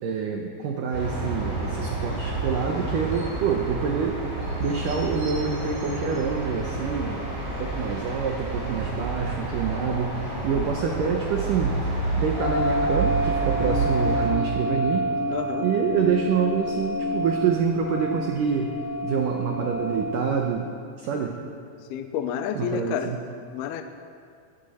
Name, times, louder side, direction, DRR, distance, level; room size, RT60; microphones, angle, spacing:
voice 1, 0.0-4.2 4.6-7.2 7.6-11.8 12.2-15.1 15.6-18.7 19.0-20.7 21.0-21.4 22.6-23.2, right 6 dB, 75° right, 2 dB, 1.9 m, -26 dB
sound 1, 0.9-14.3, right 3 dB, 50° right, 5.9 m, -29 dB
sound 2, 12.4-20.4, left 1 dB, 30° left, 3.0 m, -28 dB
voice 2, 15.3-15.7 21.9-23.1 23.5-23.8, left 9 dB, 75° left, 7 dB, 2.4 m, -29 dB
19.5 x 14.5 x 4.3 m, 2.3 s
omnidirectional pair, 5.1 m